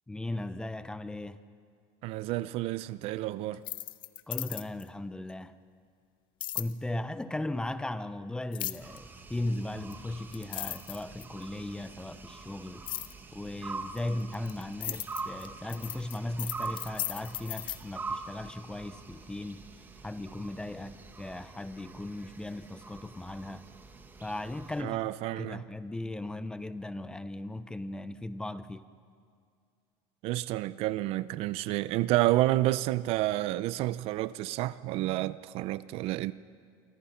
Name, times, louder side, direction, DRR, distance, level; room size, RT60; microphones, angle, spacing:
voice 1, 0.1-1.4 4.3-5.6 6.5-12.9 13.3-19.6 20.0-23.7 24.2-25.1 25.4-28.8, left 1 dB, 5° left, 0.7 m, -37 dB
voice 2, 2.0-3.6 24.8-25.6 30.2-36.3, right 16 dB, 50° right, 0.6 m, -30 dB
sound 1, 3.5-4.9 6.4-6.7 8.5-9.0 9.9-10.0 10.3-11.4 12.9-13.1 14.0-17.8, left 13 dB, 40° left, 0.9 m, -36 dB
sound 2, 8.8-24.8, right 4 dB, 15° right, 1.7 m, -44 dB
28.5 x 25.0 x 5.8 m
cardioid pair, 145°, 13 cm